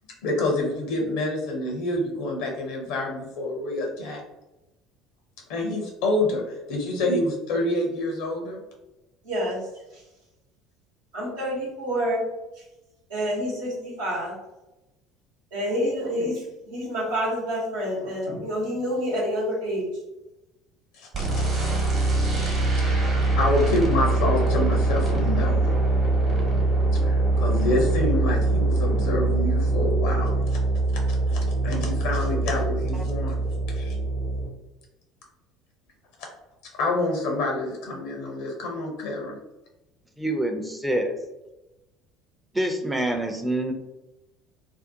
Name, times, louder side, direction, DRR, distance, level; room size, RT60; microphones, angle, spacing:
voice 1, 0.2-4.2 5.5-8.6 20.9-21.5 23.3-25.7 27.0-30.6 31.3-33.4 33.7-34.0 36.7-39.4, left 2 dB, 65° left, 0 dB, 0.6 m, -27 dB
voice 2, 9.2-9.6 9.9-10.0 11.1-12.2 13.1-14.3 15.5-19.9, equal, 75° right, -6 dB, 0.9 m, -28 dB
sound 1, 21.1-34.5, right 2 dB, 40° right, 1.0 m, -23 dB
voice 3, 40.2-41.1 42.5-43.7, right 1 dB, 5° right, 4 dB, 0.5 m, -26 dB
2.6 x 2.1 x 2.6 m, 0.99 s
hypercardioid pair, 65°, 0 cm